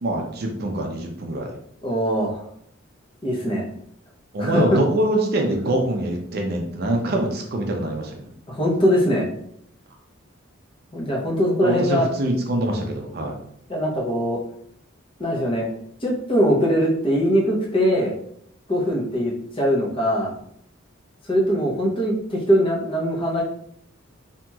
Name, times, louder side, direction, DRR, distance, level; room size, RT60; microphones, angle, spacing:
voice 1, 0.0-1.6 4.3-8.2 11.6-13.3, right 1 dB, 50° right, 2 dB, 0.5 m, -24 dB
voice 2, 1.8-2.4 3.2-3.6 4.4-4.8 8.5-9.3 10.9-12.1 13.7-14.4 15.2-15.7 16.0-18.2 18.7-20.3 21.3-23.4, equal, 25° left, -3 dB, 0.6 m, -21 dB
2.8 x 2.8 x 2.3 m, 0.70 s
head